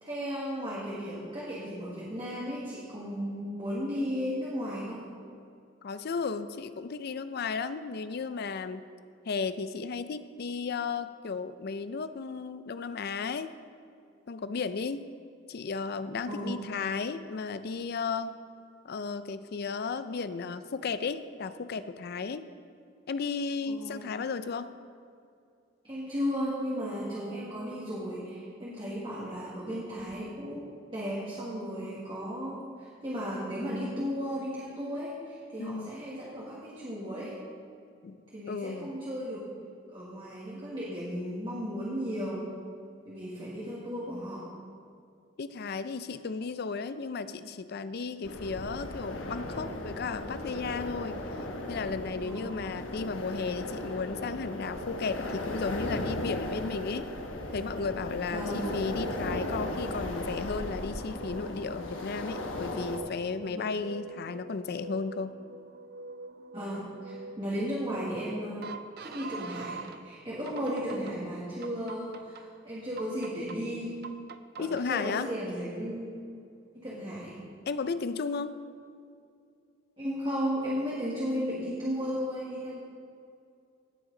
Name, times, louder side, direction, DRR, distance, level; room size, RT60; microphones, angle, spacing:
voice 1, 0.0-5.0 16.3-16.7 23.7-24.1 25.8-30.6 30.9-37.3 38.3-39.4 39.9-42.5 43.0-44.5 52.2-52.6 58.3-58.6 63.5-63.6 66.5-68.7 69.0-73.9 74.6-76.1 76.7-77.4 80.0-82.8, equal, 25° right, -6 dB, 1.6 m, -35 dB
voice 2, 5.8-8.9 9.3-13.5 14.3-15.1 15.5-18.4 18.8-22.5 23.1-24.7 35.6-35.9 38.0-38.2 38.5-39.0 45.4-51.2 51.7-57.1 57.5-65.3 74.6-75.3 77.7-78.6, left 4 dB, 55° left, 12 dB, 0.4 m, -34 dB
sound 1, 48.2-63.0, left 1 dB, 85° left, 1.1 m, -36 dB
sound 2, 61.1-70.0 70.5-71.1 71.6-72.4 73.0-73.6 74.0-74.8, right 3 dB, 55° right, 0.5 m, -45 dB
17.0 x 6.0 x 3.8 m, 2.4 s
head